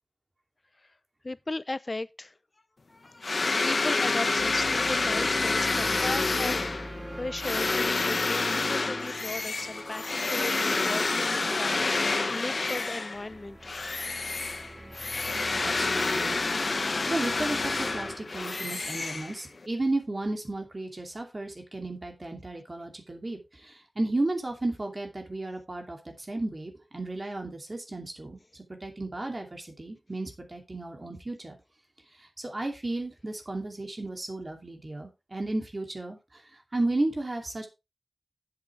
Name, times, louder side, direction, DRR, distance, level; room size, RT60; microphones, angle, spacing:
voice 1, 1.2-2.3 2.9-6.6 7.2-13.6, left 2 dB, 45° left, 0.6 m, -36 dB
sound 1, 3.2-13.3 13.6-19.7, left 3 dB, 75° left, 0.9 m, -28 dB
sound 2, 4.4-18.2, right 1 dB, 20° right, 1.0 m, -43 dB
voice 2, 15.6-28.4 28.7-31.6 32.2-37.7, right 2 dB, 45° right, 2.7 m, -34 dB
10.5 x 8.1 x 3.3 m
wide cardioid pair, 70°, 0 cm